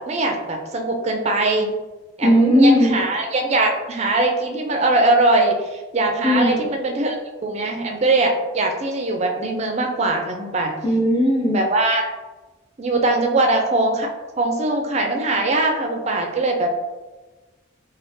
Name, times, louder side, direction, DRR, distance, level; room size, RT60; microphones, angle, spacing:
voice 1, 0.0-1.7 2.2-7.2 7.4-10.7 11.5-12.0 12.8-14.1 14.4-16.7, right 2 dB, 35° right, 3 dB, 0.4 m, -21 dB
voice 2, 2.2-3.0 6.2-6.7 10.8-11.6, equal, 25° left, -2 dB, 0.5 m, -16 dB
3.5 x 2.2 x 2.6 m, 1.2 s
head